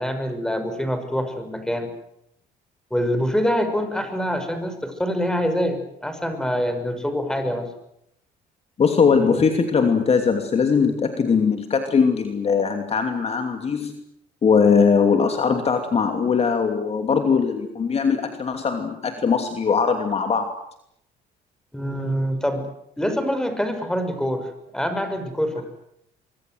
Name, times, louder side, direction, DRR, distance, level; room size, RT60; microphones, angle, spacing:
voice 1, 0.0-1.9 2.9-7.7 9.3-9.4 21.7-22.7 23.0-25.6, equal, 5° left, 7 dB, 6.1 m, -25 dB
voice 2, 8.8-14.0 14.4-20.5, left 5 dB, 35° left, 6 dB, 2.8 m, -20 dB
24.5 x 24.5 x 8.0 m, 0.75 s
cardioid pair, 110°, 17 cm